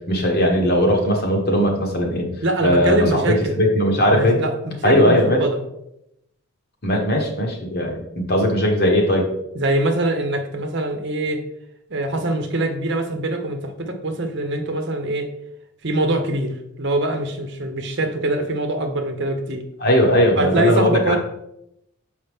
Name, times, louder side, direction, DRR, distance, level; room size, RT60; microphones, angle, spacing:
voice 1, 0.1-2.3 2.6-4.4 4.8-5.4 6.8-9.2 19.8-21.2, equal, 45° left, 1 dB, 1.2 m, -18 dB
voice 2, 2.4-3.5 4.1-5.6 9.5-11.4 11.9-15.3 15.8-19.6 20.4-21.2, right 1 dB, 50° right, 5 dB, 0.9 m, -23 dB
7.0 x 4.9 x 3.6 m, 0.80 s
head